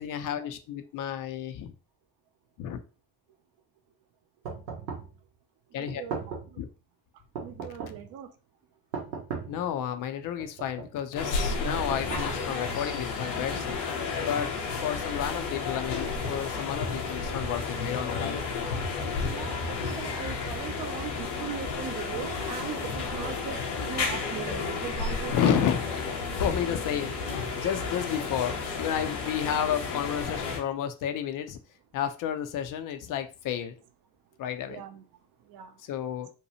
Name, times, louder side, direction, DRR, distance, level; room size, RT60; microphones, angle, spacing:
voice 1, 0.0-1.7 2.6-2.8 5.7-6.0 6.6-6.7 9.5-13.8 14.3-14.5 14.8-18.4 19.2-19.3 23.9-24.0 25.3-25.8 26.4-27.1 27.6-31.6 31.9-33.7 34.4-34.8 35.8-36.3, left 9 dB, 45° left, 0.4 m, -31 dB
sound 1, 4.4-5.2 5.9-6.6 7.3-8.1 8.9-9.7 10.4-11.0 11.7-12.6, right 5 dB, 85° right, 0.7 m, -38 dB
voice 2, 7.4-8.3 19.2-23.6 23.9-25.6 34.7-35.0 35.5-35.7, right 9 dB, 45° right, 0.6 m, -39 dB
sound 2, 11.1-30.6, left 4 dB, 85° left, 0.8 m, -32 dB
2.7 x 2.2 x 2.8 m
hypercardioid pair, 50°, 50 cm